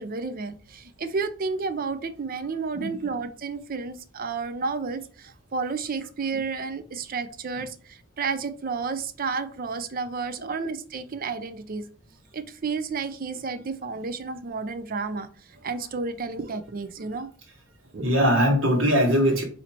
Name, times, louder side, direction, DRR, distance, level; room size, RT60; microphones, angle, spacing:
voice 1, 0.0-11.8 12.3-15.3 15.6-17.3 17.9-18.1, right 4 dB, 45° right, 11 dB, 0.5 m, -31 dB
voice 2, 18.0-19.4, equal, 75° right, 2 dB, 1.5 m, -21 dB
4.4 x 2.8 x 4.2 m, 0.41 s
head